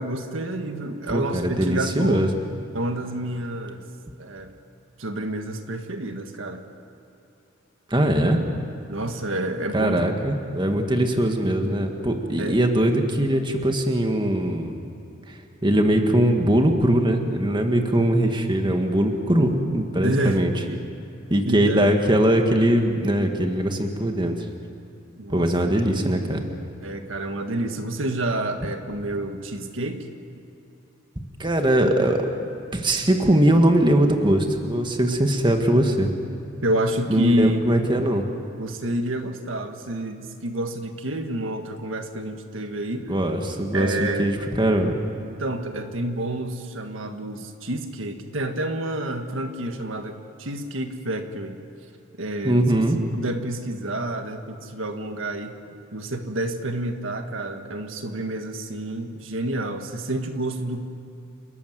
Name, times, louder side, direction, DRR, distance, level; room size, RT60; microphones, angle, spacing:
voice 1, 0.0-2.3 2.7-3.8 4.2-4.5 5.0-6.6 8.9-10.1 12.4-12.7 20.0-20.4 21.4-21.9 25.2-25.7 26.8-30.1 36.6-37.6 38.6-43.1 43.7-44.3 45.2-51.6 52.2-52.6 53.2-55.6 55.9-60.8, right 1 dB, 80° right, 6 dB, 1.7 m, -29 dB
voice 2, 1.1-2.3 7.9-8.4 9.7-14.7 15.3-20.5 21.3-24.5 25.3-26.5 31.4-36.1 37.1-38.3 43.1-45.0 52.4-53.0, right 1 dB, 25° right, 4 dB, 1.8 m, -21 dB
29.0 x 14.0 x 9.4 m, 2.8 s
head